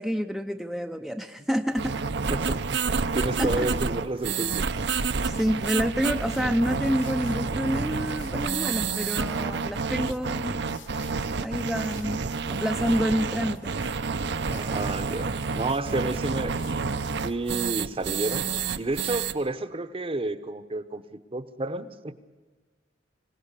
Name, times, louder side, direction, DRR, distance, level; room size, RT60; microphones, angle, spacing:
voice 1, 0.0-2.1 3.4-3.7 5.2-10.6 11.4-12.2 12.5-13.7, equal, ahead, 4 dB, 0.6 m, -28 dB
sound 1, 1.8-19.3, right 5 dB, 65° right, 0.7 m, -29 dB
voice 2, 2.3-2.8 3.1-4.7 13.3-13.5 14.5-16.6 17.2-18.5 18.8-22.1, right 2 dB, 30° right, 11 dB, 0.9 m, -30 dB
sound 2, 3.9-18.8, left 3 dB, 80° left, 1.3 m, -49 dB
25.5 x 17.0 x 8.3 m, 1.3 s
head